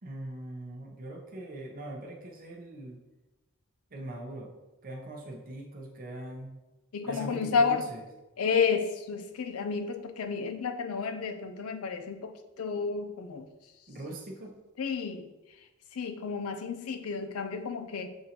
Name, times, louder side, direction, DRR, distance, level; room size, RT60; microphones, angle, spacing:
voice 1, 0.0-3.0 3.9-4.5 4.8-6.5 7.0-8.1 13.9-14.5, right 1 dB, 40° right, 0 dB, 0.6 m, -41 dB
voice 2, 6.9-7.8 8.4-13.5 14.8-15.3 16.0-18.1, left 5 dB, 80° left, 8 dB, 0.5 m, -31 dB
6.7 x 2.6 x 2.8 m, 1.0 s
head